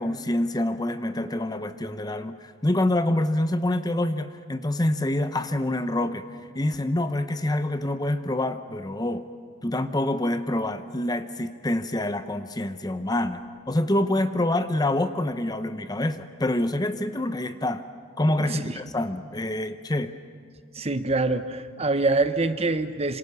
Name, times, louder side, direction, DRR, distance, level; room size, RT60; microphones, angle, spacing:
voice 1, 0.0-9.2 9.6-13.4 13.7-17.8 18.2-20.1, left 1 dB, 20° left, 10 dB, 0.7 m, -26 dB
voice 2, 18.4-18.8 20.7-23.2, right 3 dB, 30° right, 10 dB, 1.0 m, -25 dB
27.0 x 26.5 x 6.9 m, 2.1 s
head